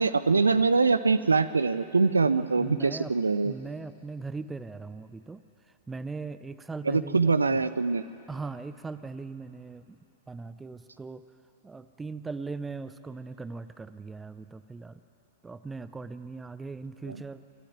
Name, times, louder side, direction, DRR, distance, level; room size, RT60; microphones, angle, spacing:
voice 1, 0.0-3.5 6.9-8.0 17.1-17.2, right 4 dB, 75° right, 13 dB, 0.7 m, -23 dB
voice 2, 2.6-3.1 3.4-5.4 5.9-7.6 8.3-10.0 10.3-11.2 11.6-15.0 15.4-17.4, right 4 dB, 10° right, 13 dB, 0.7 m, -39 dB
27.5 x 13.0 x 9.6 m, 2.7 s
figure-of-eight pair, 100°, 0 cm